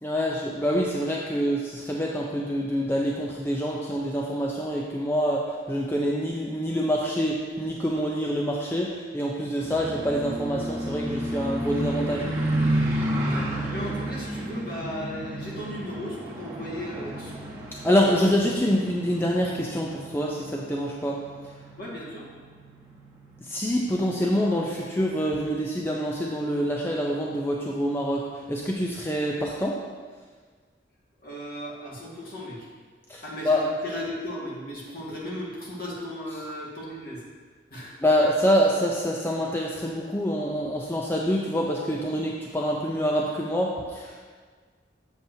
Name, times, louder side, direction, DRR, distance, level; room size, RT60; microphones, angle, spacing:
voice 1, 0.0-12.3 17.8-21.2 23.4-29.8 33.1-33.6 38.0-44.3, equal, 10° left, -2 dB, 0.4 m, -26 dB
sound 1, 9.6-25.7 26.2-26.3 26.7-26.9 27.3-27.5, right 1 dB, 15° right, 0.9 m, -32 dB
voice 2, 13.2-17.3 18.1-18.2 18.7-18.8 21.8-22.3 31.2-32.7 33.2-37.2 37.7-38.0, equal, 50° left, -5 dB, 1.7 m, -36 dB
7.6 x 7.0 x 2.7 m, 1.5 s
head